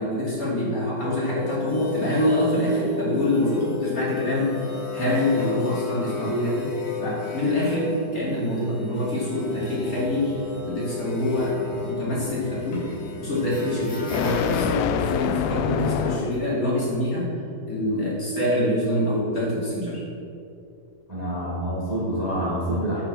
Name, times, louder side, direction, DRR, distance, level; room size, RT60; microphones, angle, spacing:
voice 1, 0.0-4.7 4.9-6.7 7.0-10.3 10.6-12.8 13.2-17.3 17.6-20.0, left 1 dB, 25° left, -7 dB, 2.7 m, -25 dB
sound 1, 1.4-16.0, left 5 dB, 55° left, 3.5 m, -34 dB
sound 2, 9.6-16.6, left 8 dB, 85° left, 2.6 m, -29 dB
voice 2, 21.1-23.0, right 1 dB, 80° right, -8 dB, 0.3 m, -27 dB
9.7 x 6.6 x 6.4 m, 2.5 s
omnidirectional pair, 4.7 m